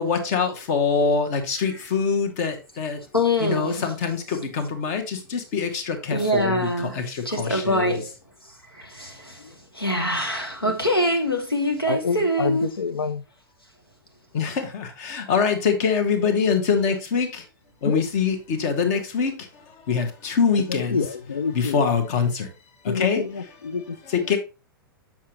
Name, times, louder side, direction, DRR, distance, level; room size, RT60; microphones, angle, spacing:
voice 1, 0.0-3.0 3.4-6.7 6.9-8.0 14.3-17.4 17.8-19.3 19.9-21.0 21.5-22.5 22.9-23.2 24.1-24.4, left 5 dB, 45° left, 1.4 m, -24 dB
voice 2, 3.1-3.9 6.1-7.0 7.2-8.1 8.7-12.8, equal, 90° left, 1.5 m, -24 dB
voice 3, 11.9-13.2 17.8-18.0 20.9-21.8 22.9-24.0, left 5 dB, 75° left, 0.5 m, -27 dB
7.3 x 6.0 x 3.0 m
figure-of-eight pair, 100°, 12 cm